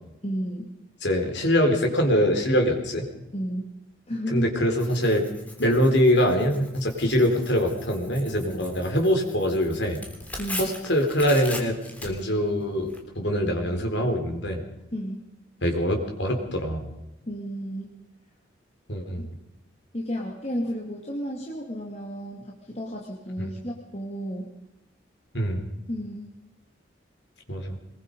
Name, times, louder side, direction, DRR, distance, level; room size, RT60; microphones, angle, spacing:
voice 1, 0.2-0.7 3.3-3.7 4.1-4.5 10.4-10.7 14.9-15.2 17.3-17.9 19.2-19.3 19.9-24.5 25.9-26.3, equal, 35° left, -1 dB, 2.5 m, -32 dB
voice 2, 1.0-3.0 4.3-5.2 5.6-10.0 10.6-11.8 12.0-14.6 15.6-16.8 18.9-19.2 23.4-23.5 25.3-25.6 27.5-27.8, equal, 80° left, 3 dB, 4.3 m, -23 dB
Tearing, 4.8-13.0, left 1 dB, 10° left, 3.2 m, -40 dB
23.5 x 21.0 x 5.4 m, 0.91 s
head